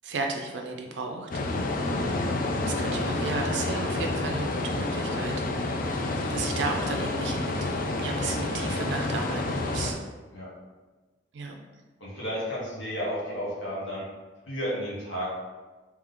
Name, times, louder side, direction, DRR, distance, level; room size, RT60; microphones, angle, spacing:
voice 1, 0.0-1.3 1.6-2.3 2.6-5.3 5.6-7.6 8.0-10.0 11.3-11.5, right 3 dB, 65° right, 2 dB, 0.4 m, -34 dB
sound 1, 1.3-9.9, left 2 dB, 50° left, 0.4 m, -29 dB
voice 2, 12.0-14.0 14.5-15.3, equal, 90° left, -7 dB, 1.2 m, -32 dB
3.5 x 3.1 x 3.6 m, 1.3 s
head